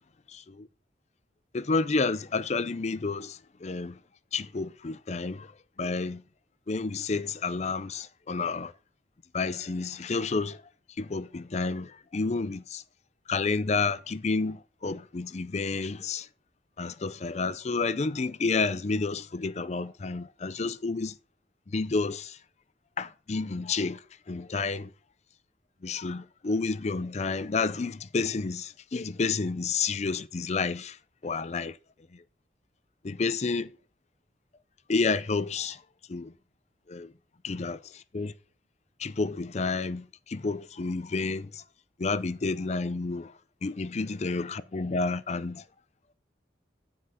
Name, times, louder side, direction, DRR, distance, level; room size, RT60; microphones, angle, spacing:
voice 1, 0.3-0.7 1.5-4.0 4.3-5.5 5.8-6.2 6.7-8.7 9.3-10.6 11.0-12.8 13.3-16.3 16.8-21.1 21.7-22.4 23.0-24.0 24.3-24.9 25.8-30.9 31.2-31.7 33.0-33.7 34.9-35.8 36.1-36.3 36.9-37.1 37.4-37.8 38.1-38.3 39.0-41.5 42.0-43.3 43.6-45.6, left 4 dB, 40° left, 0.5 m, -30 dB
9.9 x 4.9 x 5.6 m
head